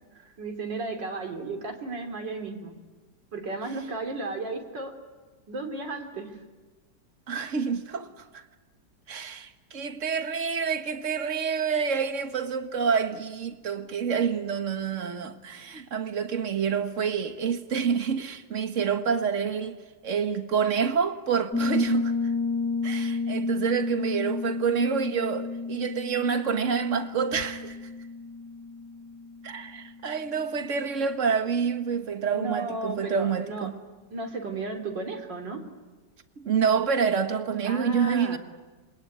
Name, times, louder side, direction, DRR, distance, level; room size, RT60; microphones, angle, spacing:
voice 1, 0.4-2.7 3.3-4.9 5.5-6.4 32.3-33.7 34.1-35.6 37.6-38.4, right 3 dB, 75° right, 3.6 m, -34 dB
voice 2, 7.3-8.4 9.1-19.8 20.0-22.1 22.8-27.8 29.4-33.8 36.4-38.4, right 6 dB, 45° right, 1.7 m, -27 dB
Piano, 21.5-30.0, left 4 dB, 5° left, 1.9 m, -31 dB
26.5 x 21.5 x 9.6 m
omnidirectional pair, 1.9 m